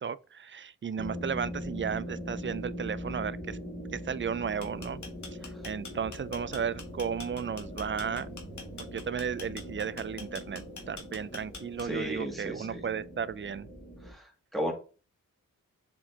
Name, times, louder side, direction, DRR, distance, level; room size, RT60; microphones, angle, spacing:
voice 1, 0.0-3.6 3.9-5.0 5.6-8.3 8.9-13.7, right 7 dB, 35° right, 0.4 m, -34 dB
sound 1, 1.0-14.1, equal, 25° left, 2.6 m, -41 dB
sound 2, 4.5-12.1, left 4 dB, 60° left, 1.6 m, -45 dB
voice 2, 11.8-12.8 14.0-14.7, equal, ahead, 2.3 m, -35 dB
7.3 x 4.5 x 2.9 m
cardioid pair, 65°, 34 cm